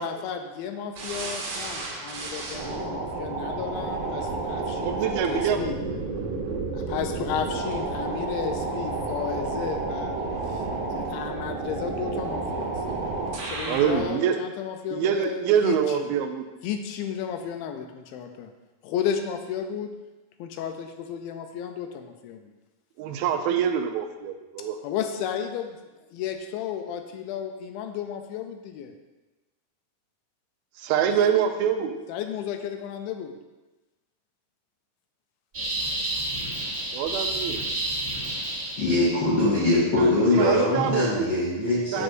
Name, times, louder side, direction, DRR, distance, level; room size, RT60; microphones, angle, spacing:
voice 1, 0.0-5.8 6.7-10.2 10.5-10.6 10.9-12.7 13.4-16.1 16.6-18.5 18.8-19.9 20.4-22.5 24.6-25.8 26.1-28.9 32.1-33.3, left 8 dB, 85° left, 6 dB, 2.4 m, -33 dB
sound 1, 1.0-14.1, right 3 dB, 65° right, 2.4 m, -31 dB
voice 2, 4.9-5.6 13.7-14.4 14.9-16.4 23.0-24.8 30.8-32.0 36.9-37.6 40.0-40.1 40.4-41.1 41.9-42.0, right 8 dB, 85° right, 6 dB, 2.4 m, -25 dB
sound 2, 35.5-39.2, right 1 dB, 35° right, 1.3 m, -30 dB
voice 3, 38.8-42.0, left 1 dB, 50° left, -8 dB, 1.3 m, -22 dB
7.5 x 6.1 x 2.6 m, 1.1 s
omnidirectional pair, 4.2 m